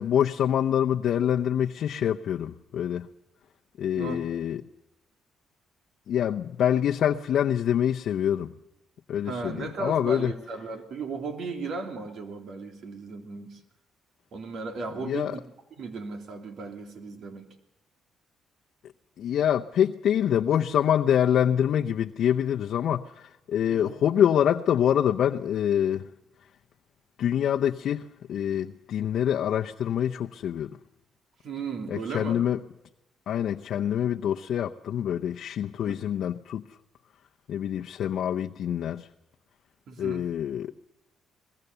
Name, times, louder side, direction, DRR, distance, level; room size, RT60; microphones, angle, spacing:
voice 1, 0.0-3.1 3.8-4.6 6.1-8.5 9.1-10.3 15.0-15.3 19.2-26.1 27.2-30.7 31.9-32.6 33.3-36.6 37.5-39.1 40.0-40.7, left 9 dB, 70° left, 3 dB, 0.7 m, -25 dB
voice 2, 3.9-4.3 9.2-13.6 14.3-15.4 15.8-17.5 23.7-24.0 31.4-32.4 35.8-36.0 39.9-40.3, right 4 dB, 65° right, 4 dB, 3.2 m, -36 dB
23.0 x 21.0 x 6.8 m, 0.93 s
cardioid pair, 90°, 0 cm